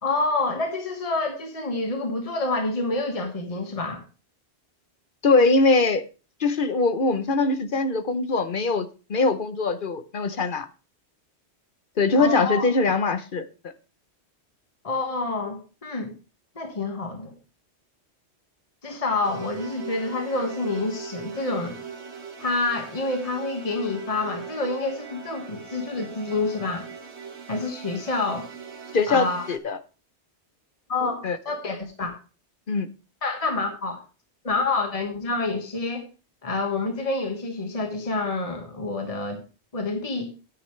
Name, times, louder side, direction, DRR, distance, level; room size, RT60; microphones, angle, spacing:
voice 1, 0.0-4.0 12.2-12.6 14.8-16.1 16.5-17.3 18.8-21.8 22.4-26.9 27.5-28.5 29.1-29.5 30.9-32.1 33.2-34.0 34.4-36.1 36.4-39.4 39.7-40.3, left 3 dB, 30° left, 3 dB, 1.7 m, -28 dB
voice 2, 5.2-6.0 6.4-10.7 12.0-13.4 28.9-29.8 31.2-31.4 32.7-32.9, left 3 dB, 50° left, 11 dB, 1.0 m, -22 dB
sound 1, 19.2-29.6, right 6 dB, 75° right, 1.9 m, -40 dB
12.5 x 9.8 x 3.2 m, 0.33 s
omnidirectional pair, 1.1 m